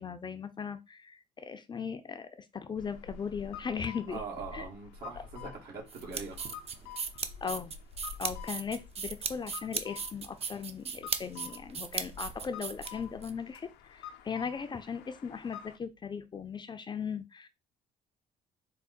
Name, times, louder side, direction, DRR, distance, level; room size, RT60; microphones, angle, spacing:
voice 1, 0.0-4.2 4.5-4.6 7.4-7.7 8.2-17.5, left 6 dB, 25° left, 0.5 m, -38 dB
sound 1, 2.8-15.8, left 8 dB, 85° left, 0.6 m, -48 dB
voice 2, 4.1-6.6, right 5 dB, 70° right, 1.9 m, -42 dB
sound 2, 5.9-13.3, right 6 dB, 35° right, 0.6 m, -37 dB
4.6 x 2.2 x 4.2 m
cardioid pair, 110°, 17 cm